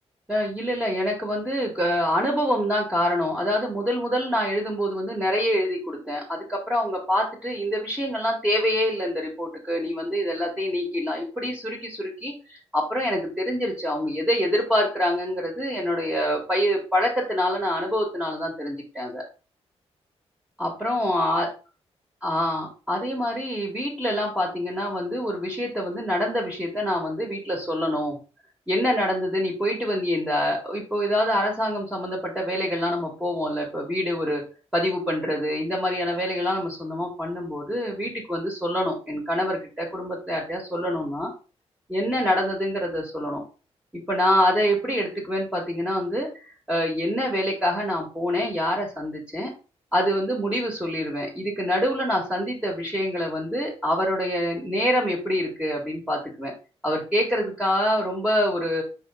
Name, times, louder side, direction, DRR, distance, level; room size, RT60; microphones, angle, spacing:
voice 1, 0.3-19.2 20.6-21.5 22.2-28.2 28.7-34.5 34.7-41.3 41.9-43.4 44.1-49.5 49.9-56.5 56.8-58.8, equal, 10° right, -2 dB, 2.1 m, -26 dB
5.6 x 4.6 x 3.9 m, 0.34 s
cardioid pair, 105°, 11 cm